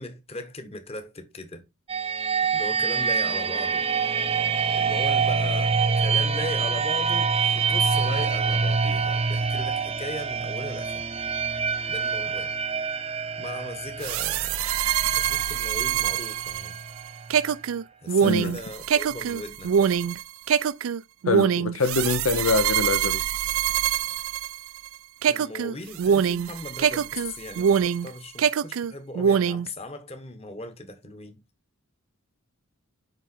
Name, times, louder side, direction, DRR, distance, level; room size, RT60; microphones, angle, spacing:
voice 1, 0.0-1.6 2.5-3.8 4.8-11.0 11.9-12.5 13.4-14.7 15.2-16.8 18.0-19.9 25.3-31.4, left 1 dB, 30° left, 1.3 m, -38 dB
sound 1, 1.9-17.5, right 5 dB, 25° right, 0.6 m, -26 dB
sound 2, 14.0-24.9 25.2-28.1 28.4-29.7, right 8 dB, 65° right, 0.3 m, -24 dB
voice 2, 18.2-18.6 21.3-23.2, left 3 dB, 75° left, 0.8 m, -24 dB
9.3 x 3.8 x 4.3 m
head